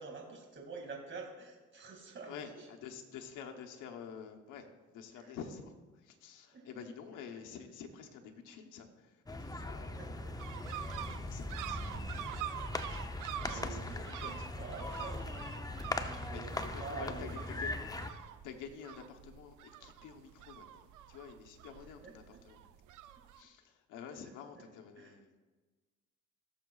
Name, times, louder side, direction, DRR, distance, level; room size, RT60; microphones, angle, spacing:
voice 1, 0.0-2.7 5.2-5.4 6.5-6.7 10.0-10.3 13.4-15.4 16.1-16.5 16.8-17.4 22.0-22.4 24.2-24.6 25.0-25.2, right 4 dB, 40° right, 1 dB, 2.2 m, -47 dB
voice 2, 2.2-10.2 10.7-12.1 13.5-14.5 16.3-17.7 18.1-22.7 23.3-25.3, left 7 dB, 90° left, 3 dB, 1.0 m, -49 dB
sound 1, 9.3-18.1, left 2 dB, 10° left, 0.6 m, -40 dB
sound 2, 10.4-23.4, right 11 dB, 80° right, 0.5 m, -46 dB
17.0 x 7.1 x 2.4 m, 1.3 s
cardioid pair, 90°, 30 cm